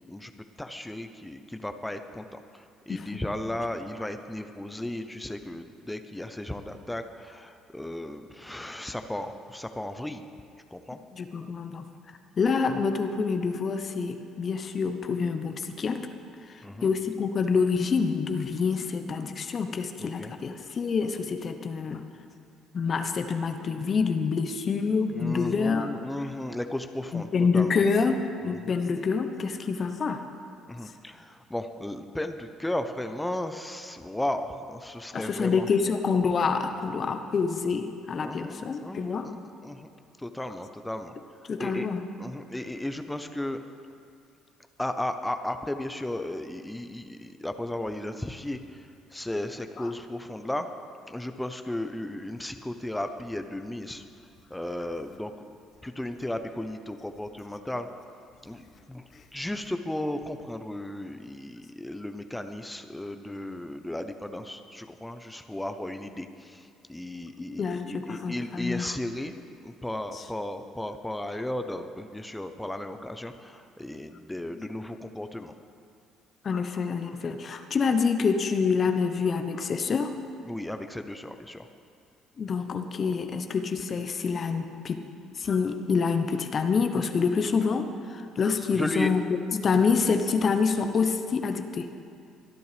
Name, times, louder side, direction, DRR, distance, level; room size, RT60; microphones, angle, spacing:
voice 1, 0.6-10.2 10.7-11.0 16.6-16.9 20.0-20.3 25.1-27.8 28.4-28.8 30.7-35.7 38.2-39.9 40.2-41.9 42.2-43.6 44.8-50.7 51.1-54.0 54.5-55.6 55.8-57.9 58.4-58.6 58.9-59.0 59.3-69.3 69.6-75.5 80.5-81.7 88.7-89.1, left 1 dB, 10° left, 7 dB, 0.9 m, -35 dB
voice 2, 2.9-3.2 11.1-11.8 12.4-16.1 16.4-22.0 22.7-25.9 27.1-30.2 35.1-39.3 41.5-42.0 49.8-49.9 67.6-68.9 70.1-70.2 74.6-74.7 76.4-80.1 82.4-85.0 85.4-89.2 89.5-91.9, left 5 dB, 45° left, 7 dB, 1.0 m, -27 dB
24.0 x 10.5 x 3.4 m, 2.4 s
hypercardioid pair, 55°, 0 cm